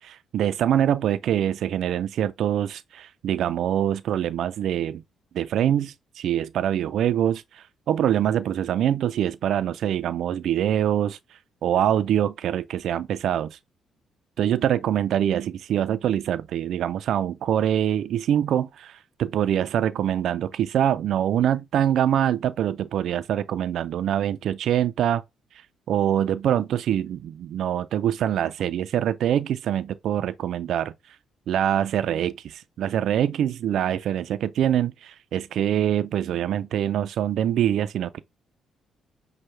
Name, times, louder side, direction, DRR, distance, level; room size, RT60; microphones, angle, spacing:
voice 1, 0.0-5.0 5.3-11.2 11.6-13.6 14.4-25.2 25.9-30.9 31.5-38.2, right 10 dB, 70° right, 0.3 m, -24 dB
5.5 x 2.1 x 3.2 m
cardioid pair, 90°, 0 cm